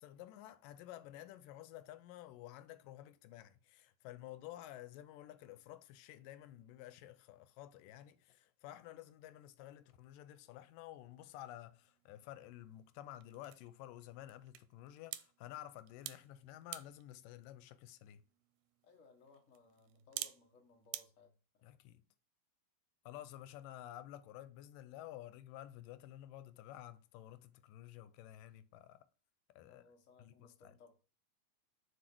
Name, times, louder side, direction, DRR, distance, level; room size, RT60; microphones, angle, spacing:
voice 1, 0.0-18.2 21.6-22.0 23.1-29.1 29.5-29.8 30.2-30.8, left 13 dB, 85° left, 2.3 m, -52 dB
sound 1, 11.7-21.0, right 14 dB, 80° right, 2.0 m, -52 dB
voice 2, 18.8-21.7 29.7-30.9, left 4 dB, 60° left, 0.8 m, -64 dB
6.7 x 4.7 x 6.0 m
omnidirectional pair, 3.8 m